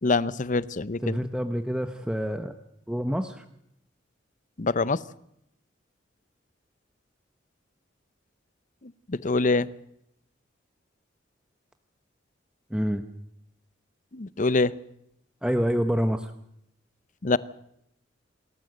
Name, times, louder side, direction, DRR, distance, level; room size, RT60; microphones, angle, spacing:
voice 1, 0.0-1.2 4.6-5.0 8.8-9.7 14.1-14.7 17.2-17.4, left 3 dB, 45° left, 17 dB, 0.8 m, -25 dB
voice 2, 1.0-2.5 2.9-3.4 12.7-13.0 15.4-16.3, equal, 5° right, 7 dB, 1.0 m, -27 dB
27.5 x 14.0 x 7.9 m, 0.77 s
head